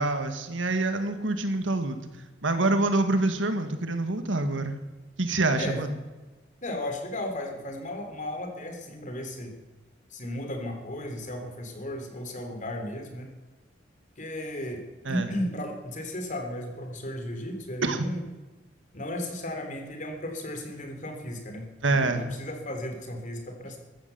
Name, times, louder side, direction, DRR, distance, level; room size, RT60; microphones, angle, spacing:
voice 1, 0.0-2.0 2.4-4.8 5.2-5.9 15.1-15.3 17.8-18.1 21.8-22.2, right 2 dB, 85° right, 8 dB, 1.8 m, -26 dB
voice 2, 6.6-9.6 10.1-13.3 14.2-18.2 18.9-21.7 22.0-23.8, left 1 dB, 40° left, 5 dB, 3.3 m, -35 dB
15.0 x 13.0 x 7.0 m, 1.2 s
head